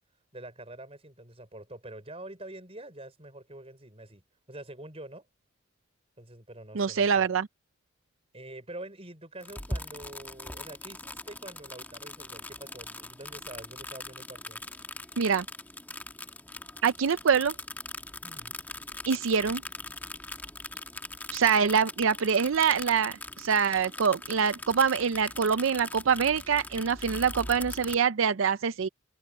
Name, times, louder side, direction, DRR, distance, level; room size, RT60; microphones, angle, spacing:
voice 1, 0.3-4.2 4.5-5.3 6.2-7.3 8.3-14.6 18.2-18.6, right 1 dB, 30° right, 5.6 m, -46 dB
voice 2, 6.7-7.5 15.2-15.4 16.8-17.5 19.1-19.6 21.3-28.9, right 6 dB, 85° right, 0.5 m, -25 dB
sound 1, 9.4-28.0, left 2 dB, 10° left, 1.2 m, -41 dB
head